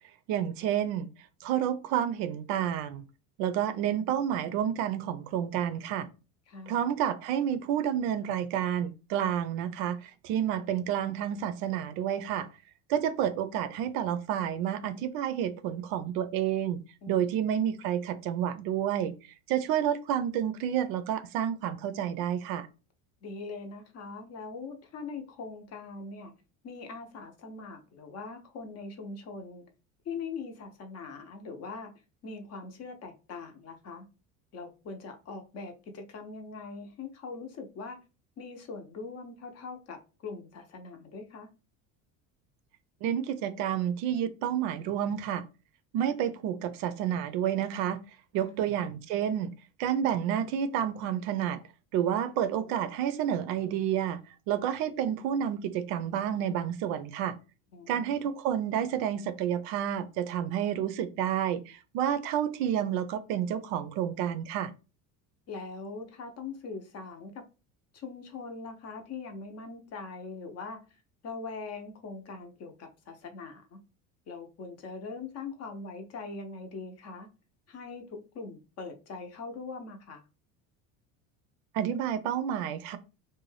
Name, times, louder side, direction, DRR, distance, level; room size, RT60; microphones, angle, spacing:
voice 1, 0.3-1.1 1.4-3.0 3.4-6.1 6.7-12.5 12.9-16.8 17.1-19.1 19.5-22.7 43.0-45.4 45.9-48.0 48.3-49.5 49.8-51.6 51.9-54.2 54.5-57.3 57.9-64.7 81.7-83.0, right 9 dB, 65° right, 0.5 m, -30 dB
voice 2, 6.5-6.8 17.0-17.3 23.2-26.3 26.6-29.6 30.0-31.9 32.2-34.1 34.5-38.0 38.4-41.5 48.4-48.7 57.7-58.3 65.5-67.4 67.9-70.8 71.2-73.8 74.3-77.3 77.7-80.2, left 4 dB, 40° left, 0.6 m, -42 dB
2.6 x 2.2 x 3.1 m
cardioid pair, 125°, 39 cm